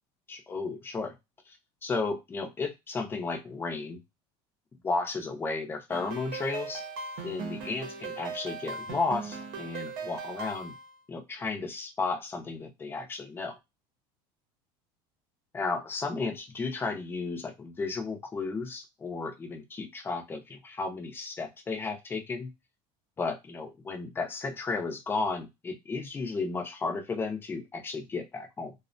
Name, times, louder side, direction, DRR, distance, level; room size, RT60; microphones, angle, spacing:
voice 1, 0.3-1.1 1.5-1.6 1.8-4.0 4.8-6.8 7.2-10.7 11.1-13.5 15.5-22.5 23.2-28.7, left 4 dB, 15° left, 3 dB, 0.6 m, -33 dB
sound 1, 5.9-10.9, right 4 dB, 75° right, 0.7 m, -39 dB
2.3 x 2.1 x 2.5 m, 0.21 s
cardioid pair, 140°, 13 cm